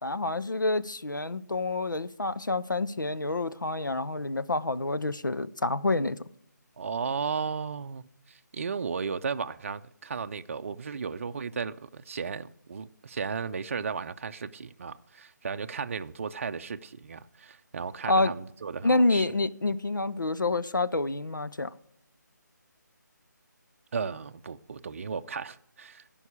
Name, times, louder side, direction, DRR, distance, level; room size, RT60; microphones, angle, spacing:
voice 1, 0.0-6.2 18.1-18.3 18.8-21.7, left 2 dB, 90° left, 0.7 m, -28 dB
voice 2, 6.8-19.3 23.9-26.0, right 5 dB, 45° right, 0.5 m, -35 dB
15.0 x 5.4 x 8.4 m
figure-of-eight pair, 155°, 10 cm